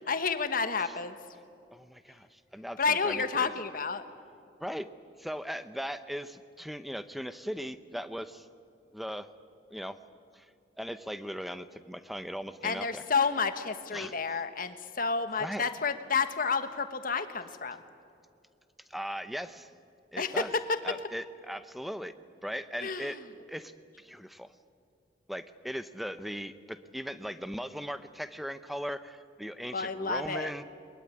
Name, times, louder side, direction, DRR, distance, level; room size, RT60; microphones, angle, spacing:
voice 1, 0.1-1.2 2.8-4.0 12.6-17.8 20.2-20.8 22.8-23.2 29.7-30.5, left 5 dB, 45° left, 10 dB, 1.4 m, -30 dB
voice 2, 1.7-3.5 4.6-4.9 5.2-8.5 8.9-9.3 9.7-10.0 10.3-10.5 10.8-13.0 13.9-14.1 15.4-15.7 18.9-19.7 20.1-20.5 20.8-22.1 22.4-23.2 23.5-24.5 25.3-30.6, equal, ahead, 12 dB, 0.7 m, -38 dB
22.0 x 21.5 x 9.6 m, 2.4 s
head